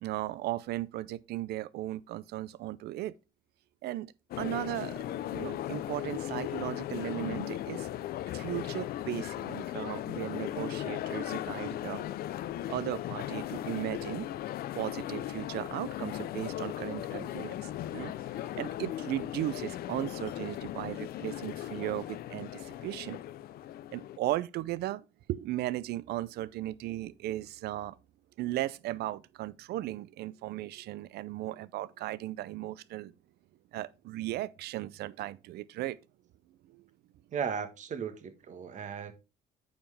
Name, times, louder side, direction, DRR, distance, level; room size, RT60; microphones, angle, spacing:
voice 1, 0.0-3.1 3.8-7.9 8.3-12.0 12.7-14.3 14.7-18.1 18.5-23.2 23.9-28.0 28.4-33.1 33.7-36.0 36.7-36.8, right 15 dB, 70° right, 0.5 m, -36 dB
sound 1, 4.3-24.2, left 12 dB, 65° left, 0.5 m, -37 dB
voice 2, 37.3-39.1, right 7 dB, 45° right, 1.4 m, -36 dB
8.8 x 5.7 x 3.3 m
cardioid pair, 110°, 17 cm